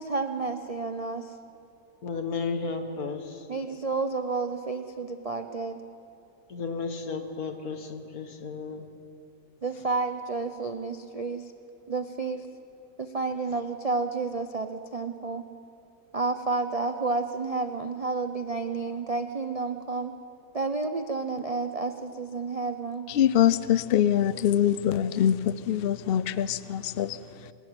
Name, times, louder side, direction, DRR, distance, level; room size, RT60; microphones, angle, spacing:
voice 1, 0.0-1.3 3.5-5.8 9.6-11.5 11.9-12.5 13.0-15.4 16.1-20.1 20.5-23.1, right 3 dB, 45° right, 0.4 m, -30 dB
voice 2, 2.0-3.5 6.5-8.9, left 4 dB, 65° left, 2.0 m, -33 dB
voice 3, 23.1-27.2, left 10 dB, 85° left, 0.5 m, -24 dB
27.0 x 13.0 x 9.0 m
omnidirectional pair, 1.7 m